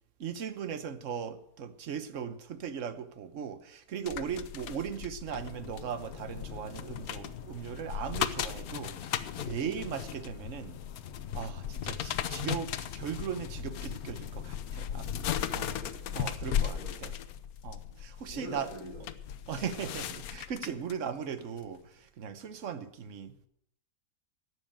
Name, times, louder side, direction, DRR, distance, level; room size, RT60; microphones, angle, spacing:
voice 1, 0.2-10.8 11.3-15.1 15.5-15.7 16.1-17.1 17.6-18.7 19.5-23.5, right 7 dB, 55° right, 11 dB, 1.3 m, -38 dB
sound 1, 4.1-20.9 21.4-21.6, left 10 dB, 75° left, 1.2 m, -37 dB
sound 2, 5.4-15.8, left 8 dB, 55° left, 1.0 m, -46 dB
voice 2, 14.9-16.1 16.7-17.2 17.8-17.9 18.3-19.0 22.3-22.5, equal, 30° left, -7 dB, 4.8 m, -46 dB
12.0 x 7.8 x 9.0 m, 0.72 s
omnidirectional pair, 1.6 m